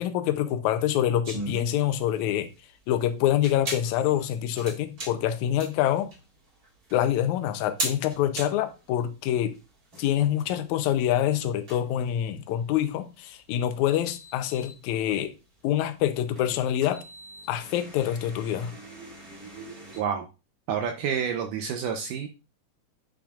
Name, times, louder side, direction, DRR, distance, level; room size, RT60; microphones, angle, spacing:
voice 1, 0.0-2.5 2.9-6.1 6.9-9.5 10.0-15.3 15.6-17.0 17.5-18.7, left 11 dB, 75° left, 1.8 m, -26 dB
sound 1, 1.2-20.0, right 2 dB, 30° right, 2.1 m, -41 dB
voice 2, 20.0-20.3 20.7-22.3, right 7 dB, 80° right, 2.1 m, -29 dB
8.4 x 5.8 x 2.4 m
omnidirectional pair, 3.9 m